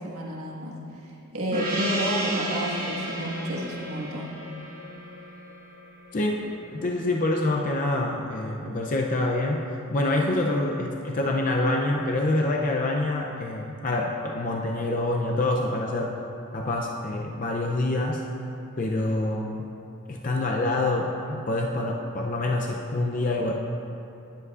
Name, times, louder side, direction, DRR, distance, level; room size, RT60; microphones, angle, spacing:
voice 1, 0.0-4.3, right 1 dB, 85° right, -4 dB, 1.6 m, -31 dB
Gong, 1.5-6.5, right 1 dB, 40° right, 1.3 m, -33 dB
voice 2, 6.1-6.4 6.7-9.6 9.9-16.1 16.5-18.2 18.8-19.7 20.1-23.5, left 2 dB, 35° left, 0 dB, 0.5 m, -26 dB
17.5 x 7.9 x 2.4 m, 2.9 s
head